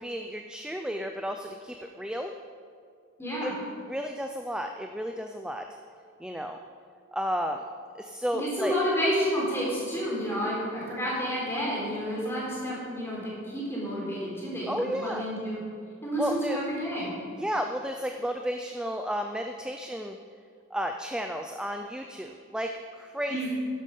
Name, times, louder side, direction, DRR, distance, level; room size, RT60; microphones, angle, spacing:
voice 1, 0.0-2.3 3.4-3.5 3.9-5.7 6.2-6.6 7.1-7.6 7.9-8.7 14.7-15.3 16.2-16.6 17.4-20.2 20.7-23.4, equal, 5° right, 5 dB, 0.4 m, -32 dB
voice 2, 3.2-3.5 8.4-15.6 16.0-17.1 23.3-23.5, equal, 10° left, -5 dB, 4.0 m, -30 dB
11.5 x 11.0 x 5.4 m, 2.2 s
head